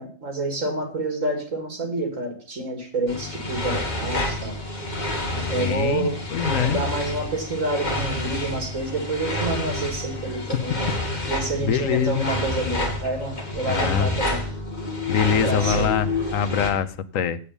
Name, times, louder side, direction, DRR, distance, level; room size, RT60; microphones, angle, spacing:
voice 1, 0.0-4.5 5.3-6.2 6.6-10.8 11.3-14.4 15.3-15.9, right 2 dB, 75° right, 4 dB, 2.9 m, -28 dB
sound 1, 3.1-16.7, left 1 dB, 35° left, 2.0 m, -28 dB
voice 2, 5.6-6.8 11.6-12.3 13.6-14.1 15.1-17.4, left 8 dB, 80° left, 13 dB, 1.1 m, -24 dB
8.4 x 8.2 x 7.0 m, 0.43 s
omnidirectional pair, 1.4 m